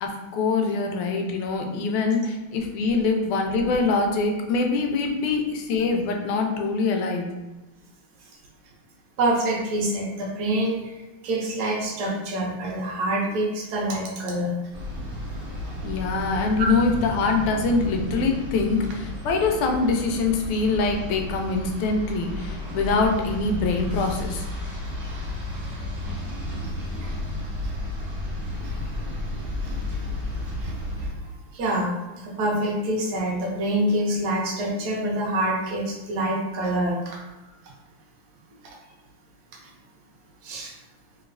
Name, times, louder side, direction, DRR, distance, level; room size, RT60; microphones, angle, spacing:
voice 1, 0.0-7.3 15.8-24.5, left 3 dB, 90° left, 3 dB, 1.5 m, -24 dB
voice 2, 9.2-10.8 11.2-14.5 27.0-27.1 30.6-30.7 31.5-37.2 40.4-40.7, right 1 dB, 80° right, -2 dB, 0.9 m, -26 dB
sound 1, 14.7-31.1, left 1 dB, 50° right, 0.6 m, -32 dB
3.2 x 3.0 x 2.5 m, 1.0 s
omnidirectional pair, 2.4 m